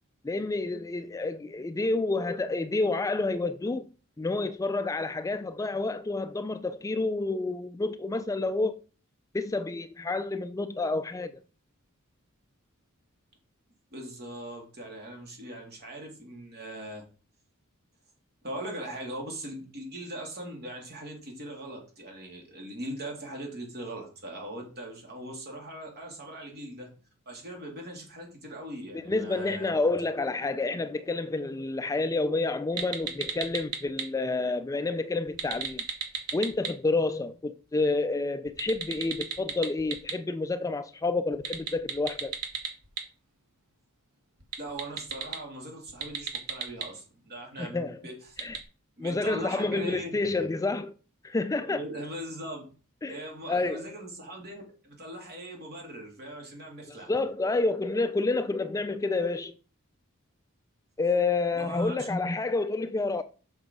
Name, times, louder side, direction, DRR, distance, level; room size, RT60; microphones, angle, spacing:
voice 1, 0.2-3.9 4.2-8.8 9.3-11.3 29.0-35.8 36.3-42.4 47.6-48.0 48.4-48.6 49.0-50.9 51.2-51.8 53.0-53.2 53.5-53.9 56.9-59.6 61.0-63.2, left 3 dB, 15° left, 0.3 m, -29 dB
voice 2, 13.9-17.0 18.4-26.9 27.2-29.7 44.6-48.4 49.0-50.2 51.6-52.6 53.1-57.1 61.5-62.1, right 1 dB, 50° right, 3.1 m, -40 dB
sound 1, 32.8-34.0 35.3-36.7 38.5-40.1 41.3-43.0 44.4-45.4 45.9-46.8 48.4-48.6, right 8 dB, 80° right, 1.8 m, -32 dB
7.2 x 5.7 x 5.3 m
head